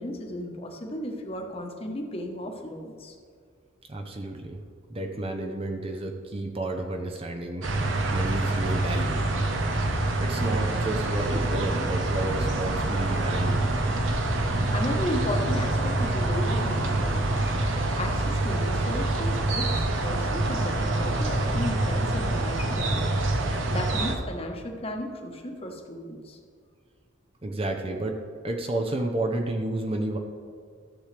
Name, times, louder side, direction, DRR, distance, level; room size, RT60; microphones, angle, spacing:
voice 1, 0.0-3.1 14.6-26.4, left 1 dB, 30° left, 2 dB, 1.1 m, -35 dB
voice 2, 3.9-4.6 4.9-7.7 8.1-9.2 10.2-13.6 27.4-30.2, right 1 dB, 30° right, 3 dB, 0.7 m, -31 dB
sound 1, 7.6-24.2, right 2 dB, 75° right, 1.0 m, -26 dB
13.5 x 7.2 x 3.4 m, 2.1 s
head